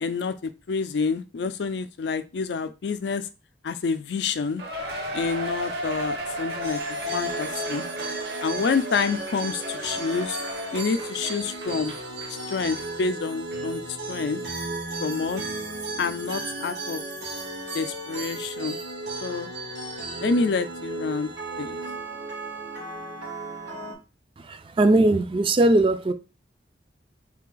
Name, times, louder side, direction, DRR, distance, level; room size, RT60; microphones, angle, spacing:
voice 1, 0.0-3.3 3.6-4.6 5.1-7.9 8.4-10.4 10.7-12.0 12.3-14.4 15.0-15.4 16.0-17.0 17.7-18.8 19.2-19.5 20.2-21.3 21.6-21.8, left 4 dB, 75° left, 0.4 m, -28 dB
Cheering, 4.6-12.4 12.8-12.9 13.5-13.6, equal, 65° right, 1.0 m, -34 dB
sound 1, 6.6-23.9, right 2 dB, 85° right, 1.8 m, -34 dB
voice 2, 24.4-26.1, right 2 dB, 30° right, 0.3 m, -20 dB
3.4 x 3.2 x 3.8 m
head